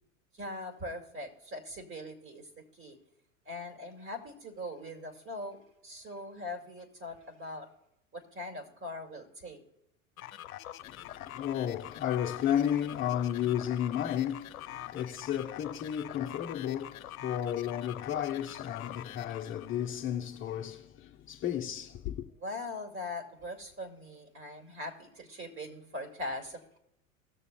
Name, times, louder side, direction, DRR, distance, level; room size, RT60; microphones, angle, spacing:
voice 1, 0.3-3.0 3.5-7.7 8.1-9.6 22.4-26.8, left 1 dB, 30° right, 2.3 m, -41 dB
sound 1, 10.2-19.9, left 12 dB, 85° left, 0.7 m, -45 dB
voice 2, 10.8-22.2, left 10 dB, 30° left, 0.8 m, -33 dB
18.5 x 6.8 x 2.3 m
hypercardioid pair, 100°, 41 cm